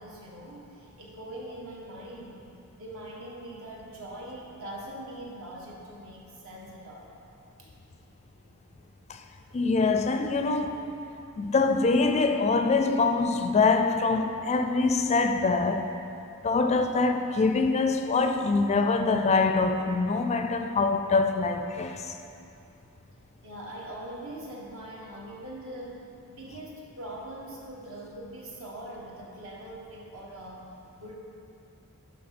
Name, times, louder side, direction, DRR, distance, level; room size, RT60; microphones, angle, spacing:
voice 1, 0.0-2.5 2.8-7.1 7.6-7.7 23.4-30.7 31.0-31.2, right 1 dB, 65° right, 1.6 m, -42 dB
voice 2, 9.5-10.9 11.4-15.9 16.4-22.1, left 3 dB, 30° left, 0.4 m, -24 dB
11.5 x 3.8 x 6.0 m
head